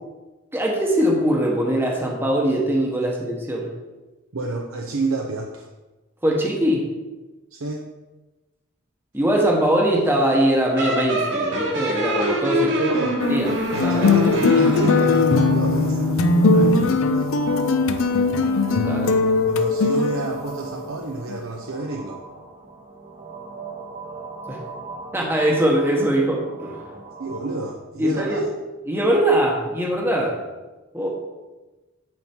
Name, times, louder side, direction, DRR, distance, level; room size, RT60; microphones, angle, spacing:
voice 1, 0.5-3.7 6.2-6.9 9.1-12.8 13.3-13.5 13.8-14.1 14.4-14.6 18.8-19.1 24.5-24.6 25.1-26.9 28.0-28.4 28.9-30.4 30.9-31.1, right 1 dB, 10° right, -2 dB, 1.0 m, -21 dB
voice 2, 4.3-5.7 7.5-7.9 12.7-13.2 13.7-17.3 19.4-22.2 27.2-28.5, right 2 dB, 75° right, 1 dB, 0.7 m, -29 dB
sound 1, 10.8-16.8, left 1 dB, 55° right, 1.6 m, -24 dB
sound 2, 13.2-20.6 21.3-21.4, left 3 dB, 70° left, 0.5 m, -20 dB
sound 3, 14.2-27.7, right 3 dB, 35° right, 0.9 m, -40 dB
10.5 x 4.4 x 4.4 m, 1.2 s
head